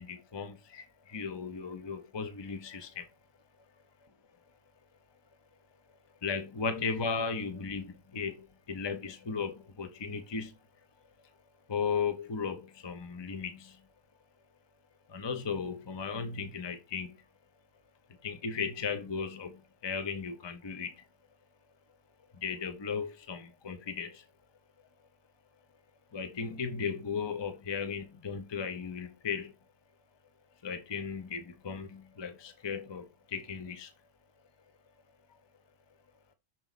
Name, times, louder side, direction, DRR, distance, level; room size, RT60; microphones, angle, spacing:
voice 1, 0.0-3.1 5.8-5.9 6.2-10.6 11.2-11.3 11.7-13.9 15.1-17.2 18.1-21.0 22.3-24.3 26.1-29.5 30.6-33.9 35.3-35.4, left 5 dB, 30° left, 0.7 m, -36 dB
6.2 x 4.1 x 3.9 m
omnidirectional pair, 1.1 m